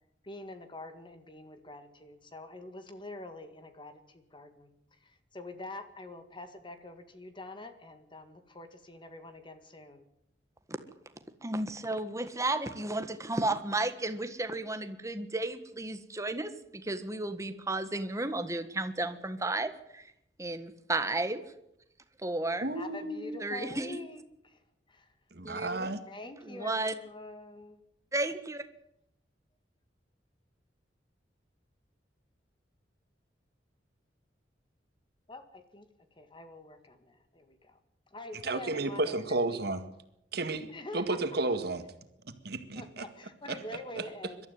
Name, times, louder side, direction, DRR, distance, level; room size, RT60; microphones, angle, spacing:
voice 1, 0.2-10.1 22.7-24.6 24.9-25.1 26.1-27.8 35.3-37.8 38.1-39.6 40.7-41.4 42.8-44.5, left 2 dB, 30° left, 9 dB, 1.9 m, -46 dB
voice 2, 11.4-20.1 20.4-21.4 22.2-22.7 23.4-24.0 25.4-25.9 26.5-26.9 28.1-28.6, right 2 dB, 20° right, 9 dB, 1.5 m, -33 dB
voice 3, 22.6-23.4 25.3-26.0 38.4-39.8 40.3-40.7 40.9-41.8 42.4-43.0, right 2 dB, 60° right, 8 dB, 2.0 m, -32 dB
22.5 x 13.0 x 9.5 m, 0.79 s
head